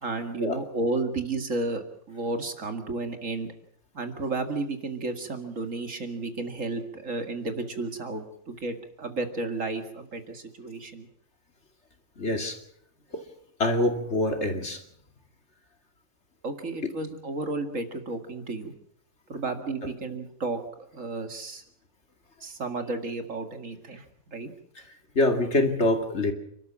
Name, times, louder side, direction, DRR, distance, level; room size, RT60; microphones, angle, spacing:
voice 1, 0.0-3.5 3.9-11.1 16.4-18.7 19.3-21.6 22.4-24.0 24.3-24.5, right 3 dB, 55° right, 6 dB, 2.6 m, -32 dB
voice 2, 12.2-12.6 13.1-13.2 13.6-14.8 25.1-26.3, left 2 dB, 45° left, 5 dB, 2.8 m, -25 dB
29.5 x 13.0 x 7.4 m, 0.71 s
omnidirectional pair, 1.6 m